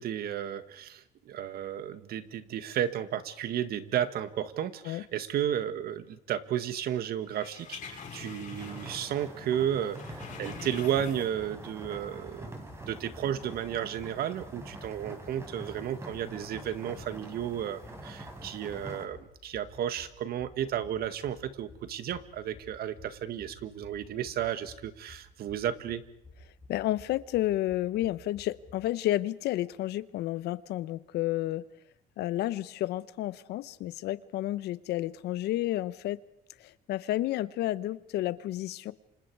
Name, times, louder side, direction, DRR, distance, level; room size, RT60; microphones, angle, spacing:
voice 1, 0.0-26.0, right 10 dB, 65° right, 11 dB, 1.8 m, -33 dB
sound 1, 7.3-9.2 9.5-11.5 11.9-12.0, left 6 dB, 50° left, 6.5 m, -45 dB
sound 2, 8.5-19.1, right 1 dB, 15° right, 5.3 m, -45 dB
sound 3, 11.3-28.8, left 2 dB, 30° left, 6.8 m, -55 dB
voice 2, 26.7-31.6 32.2-36.2 36.6-38.9, left 14 dB, 80° left, 16 dB, 1.0 m, -31 dB
29.0 x 26.5 x 4.8 m, 0.78 s
cardioid pair, 110°, 17 cm